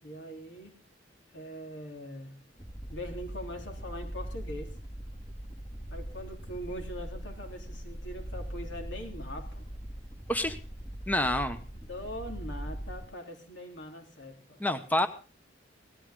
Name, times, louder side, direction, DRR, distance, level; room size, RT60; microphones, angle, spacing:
voice 1, 0.0-0.8 1.3-2.4 2.9-4.8 5.9-9.7 11.7-14.6, equal, 75° left, 4 dB, 3.6 m, -42 dB
sound 1, 2.5-13.1, equal, 30° left, 3.4 m, -41 dB
voice 2, 11.1-11.6 14.6-15.1, left 1 dB, 10° left, 9 dB, 0.9 m, -27 dB
18.0 x 14.5 x 3.8 m, 0.34 s
head